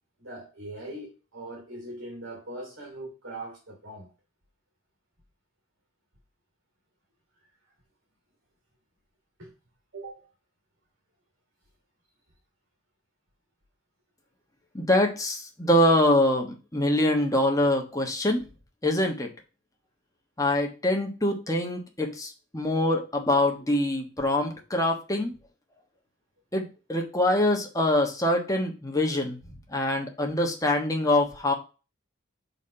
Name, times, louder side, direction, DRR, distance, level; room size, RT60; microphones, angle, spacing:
voice 1, 0.2-4.1 9.4-9.5 9.9-10.2, right 1 dB, 70° right, 2.9 m, -40 dB
voice 2, 14.7-18.4 18.8-19.3 20.4-25.3 26.5-29.4 29.7-31.5, left 1 dB, 15° left, 1.2 m, -24 dB
5.7 x 4.2 x 5.5 m
head